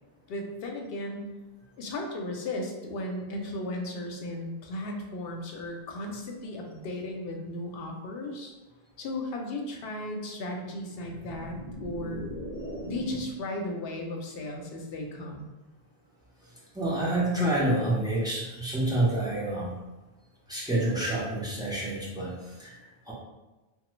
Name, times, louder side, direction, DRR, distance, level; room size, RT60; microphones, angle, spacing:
voice 1, 0.3-1.3 1.8-8.5 9.0-12.3 12.9-15.5, left 1 dB, 70° left, 2 dB, 0.8 m, -35 dB
sound 1, 10.9-13.5, equal, 65° right, 0.8 m, -39 dB
voice 2, 16.7-19.7 20.5-23.1, right 1 dB, 5° right, -7 dB, 0.6 m, -28 dB
2.9 x 2.1 x 3.1 m, 1.1 s
omnidirectional pair, 1.0 m